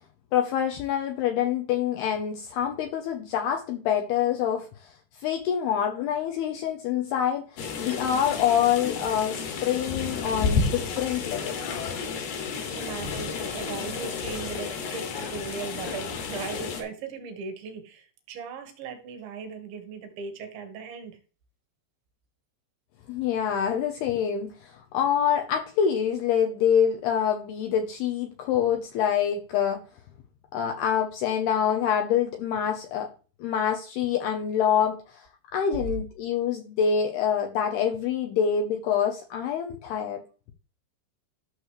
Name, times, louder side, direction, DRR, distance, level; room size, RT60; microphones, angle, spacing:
voice 1, 0.3-4.9 5.2-11.6 23.1-29.8 30.5-33.1 33.4-35.3 35.5-40.2, left 8 dB, 80° left, 2.4 m, -26 dB
sound 1, 7.6-16.8, left 5 dB, 65° left, 3.6 m, -31 dB
voice 2, 12.7-21.2 35.9-36.0, right 5 dB, 70° right, 3.6 m, -38 dB
13.0 x 6.7 x 3.2 m
omnidirectional pair, 5.6 m